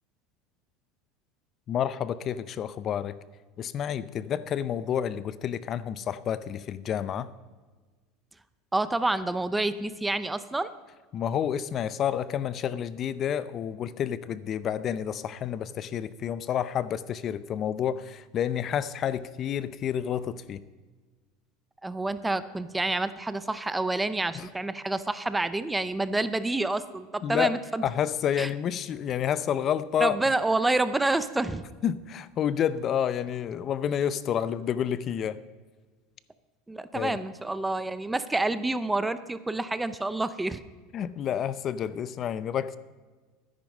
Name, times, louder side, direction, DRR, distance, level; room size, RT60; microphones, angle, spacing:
voice 1, 1.7-3.2 3.6-7.3 11.1-20.6 24.3-24.5 27.2-27.6 27.8-30.2 31.8-35.4 36.9-37.2 40.9-42.8, left 9 dB, 35° left, 16 dB, 0.5 m, -29 dB
voice 2, 8.7-10.7 21.8-27.8 28.4-28.5 30.0-31.7 36.7-40.6, right 2 dB, 10° right, 13 dB, 0.6 m, -28 dB
12.5 x 10.5 x 5.3 m, 1.4 s
supercardioid pair, 130°, 0 cm